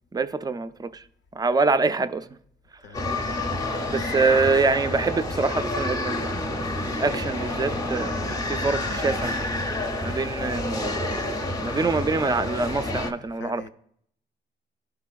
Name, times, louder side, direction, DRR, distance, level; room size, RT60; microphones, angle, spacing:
voice 1, 0.1-1.0 1.4-2.3 3.0-3.2 3.9-9.4 10.0-13.7, right 4 dB, 20° right, 0.4 m, -25 dB
sound 1, 2.9-13.1, left 2 dB, 20° left, 0.6 m, -29 dB
voice 2, 12.8-13.7, left 5 dB, 65° left, 0.5 m, -45 dB
11.5 x 4.1 x 2.3 m
cardioid pair, 90°, 20 cm